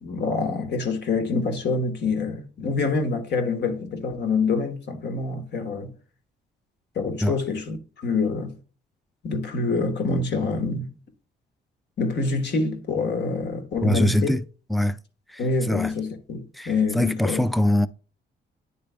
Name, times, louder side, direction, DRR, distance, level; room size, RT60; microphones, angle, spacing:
voice 1, 0.0-5.9 6.9-8.5 9.2-10.9 12.0-14.3 15.4-17.5, left 4 dB, 60° left, 1.3 m, -26 dB
voice 2, 13.8-14.4 14.7-15.0 15.3-15.9 16.6-17.9, left 1 dB, ahead, 0.3 m, -23 dB
9.6 x 3.3 x 3.4 m
cardioid pair, 90°, 20 cm